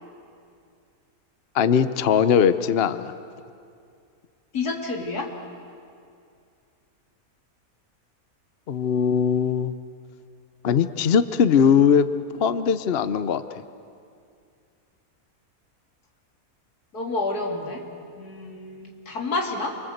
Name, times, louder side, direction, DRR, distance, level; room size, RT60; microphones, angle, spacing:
voice 1, 1.5-3.1 8.7-9.7 10.6-12.1 12.4-13.4, left 7 dB, 50° left, 12 dB, 0.9 m, -20 dB
voice 2, 4.5-5.3 16.9-17.8 18.1-19.8, left 3 dB, 90° left, 1 dB, 3.4 m, -29 dB
28.5 x 24.5 x 8.0 m, 2.4 s
omnidirectional pair, 1.6 m